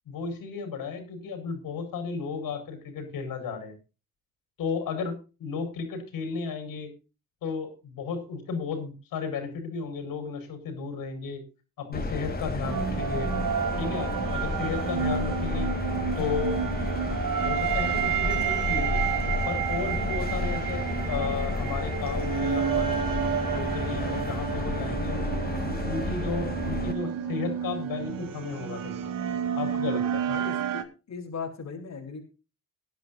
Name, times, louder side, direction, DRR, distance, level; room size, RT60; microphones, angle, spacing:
voice 1, 0.1-3.7 4.6-6.9 7.4-11.4 11.8-13.3 13.8-15.7 16.2-16.6 17.4-19.0 19.5-23.0 23.5-25.3 25.6-29.1 29.6-30.2, left 5 dB, 80° left, 7 dB, 5.5 m, -34 dB
sound 1, 11.9-26.9, left 2 dB, 25° left, 3.1 m, -31 dB
sound 2, 12.6-30.8, right 8 dB, 75° right, 2.1 m, -30 dB
voice 2, 30.3-32.2, left 5 dB, 55° left, 0 dB, 3.8 m, -38 dB
19.5 x 10.5 x 2.6 m, 0.31 s
cardioid pair, 80°, 33 cm